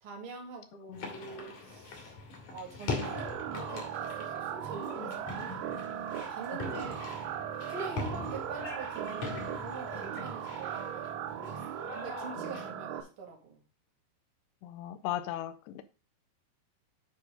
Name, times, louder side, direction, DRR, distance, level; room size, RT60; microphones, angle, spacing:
voice 1, 0.0-2.1 2.5-5.7 6.1-7.0 7.7-13.6, right 4 dB, 50° right, 1.7 m, -45 dB
sound 1, 0.9-12.7, left 3 dB, 50° left, 2.7 m, -42 dB
sound 2, 3.0-13.0, right 10 dB, 85° right, 3.0 m, -38 dB
voice 2, 14.6-15.8, left 13 dB, 90° left, 2.4 m, -37 dB
9.5 x 4.5 x 5.0 m
omnidirectional pair, 5.5 m